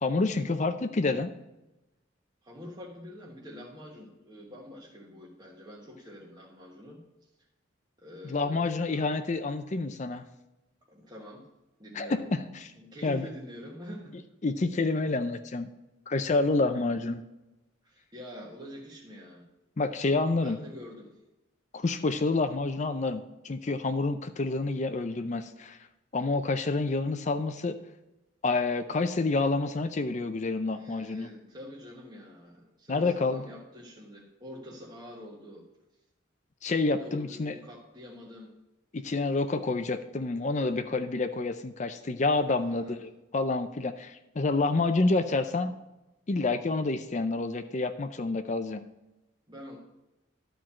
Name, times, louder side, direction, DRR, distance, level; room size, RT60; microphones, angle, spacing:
voice 1, 0.0-1.3 8.3-10.2 11.9-12.7 13.0-13.3 14.4-15.7 16.1-17.2 19.8-20.6 21.7-25.8 26.1-27.8 28.4-31.3 32.9-33.4 36.6-37.5 38.9-45.7 46.3-48.8, left 3 dB, 35° left, 9 dB, 0.5 m, -28 dB
voice 2, 2.4-7.3 8.0-9.0 10.9-11.5 11.8-12.2 12.7-14.2 16.6-16.8 17.8-19.5 20.4-21.2 30.6-35.7 37.0-38.5 42.6-43.0 49.5-49.8, left 1 dB, 20° right, -4 dB, 1.4 m, -46 dB
12.5 x 4.6 x 7.4 m, 0.97 s
head